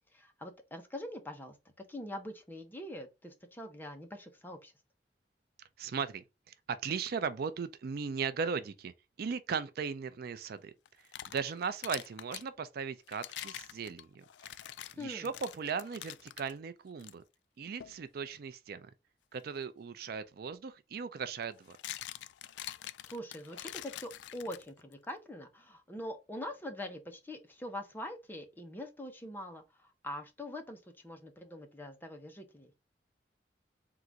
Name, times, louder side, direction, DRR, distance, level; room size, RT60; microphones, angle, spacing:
voice 1, 0.1-4.7 14.8-15.3 23.1-32.7, left 1 dB, 10° left, 0.8 m, -44 dB
voice 2, 5.8-8.9 9.2-10.7 11.3-14.6 15.0-17.2 17.6-18.9 19.3-21.8, right 6 dB, 60° right, 0.4 m, -37 dB
sound 1, 10.8-12.5 13.1-16.5 17.0-17.1 17.8-18.0 20.1-20.2 21.4-24.9, left 12 dB, 75° left, 0.3 m, -45 dB
3.8 x 2.5 x 4.4 m
head